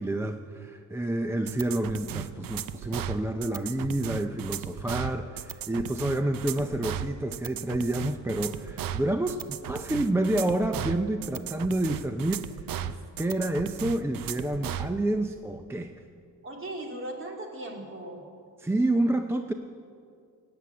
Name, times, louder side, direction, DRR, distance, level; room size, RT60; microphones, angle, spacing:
voice 1, 0.0-15.9 18.6-19.5, right 1 dB, 10° right, 6 dB, 0.5 m, -29 dB
sound 1, 1.5-14.9, right 10 dB, 80° right, 0.7 m, -36 dB
voice 2, 16.4-18.2, right 1 dB, 40° right, 0 dB, 2.9 m, -38 dB
17.5 x 7.9 x 8.6 m, 2.3 s
cardioid pair, 125°, 34 cm